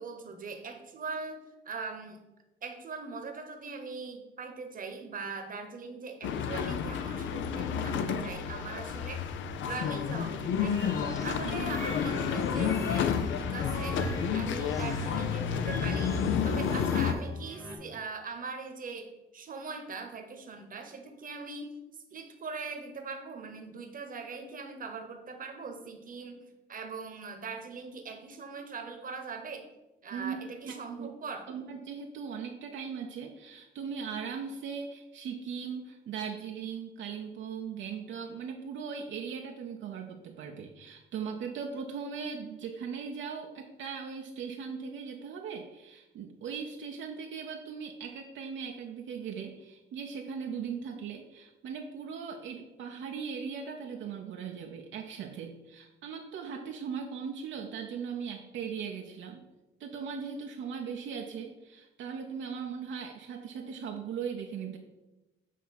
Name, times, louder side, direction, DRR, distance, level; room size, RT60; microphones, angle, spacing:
voice 1, 0.0-1.4 1.6-2.2 2.6-9.3 9.6-11.0 11.2-14.0 14.3-16.1 16.4-21.8 22.1-26.4 26.7-29.7 30.0-31.5, right 4 dB, 45° right, 5 dB, 1.0 m, -41 dB
sound 1, 6.2-17.1, left 7 dB, 75° left, 0.6 m, -30 dB
sound 2, 10.5-17.8, equal, 15° left, 1.3 m, -41 dB
voice 2, 30.6-31.1 31.5-59.4 59.8-64.8, right 6 dB, 70° right, 2 dB, 0.7 m, -39 dB
7.5 x 2.7 x 5.9 m, 1.0 s
cardioid pair, 90°, 20 cm